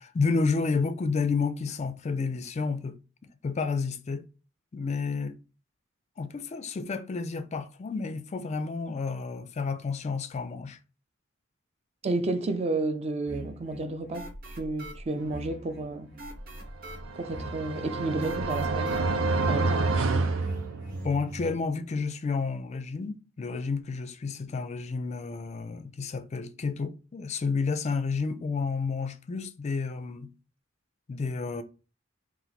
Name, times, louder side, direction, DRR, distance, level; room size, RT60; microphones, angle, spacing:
voice 1, 0.0-3.0 3.4-4.2 4.7-5.4 6.2-10.8 21.0-30.3 31.1-31.6, left 4 dB, 35° left, 0.4 m, -30 dB
voice 2, 12.0-14.3 14.6-16.1 17.2-19.0 19.5-19.9, right 2 dB, 30° right, 0.4 m, -31 dB
sound 1, 13.3-21.5, right 1 dB, 50° right, 1.0 m, -43 dB
sound 2, 16.9-21.3, right 3 dB, 90° right, 0.6 m, -28 dB
4.0 x 2.5 x 4.0 m
head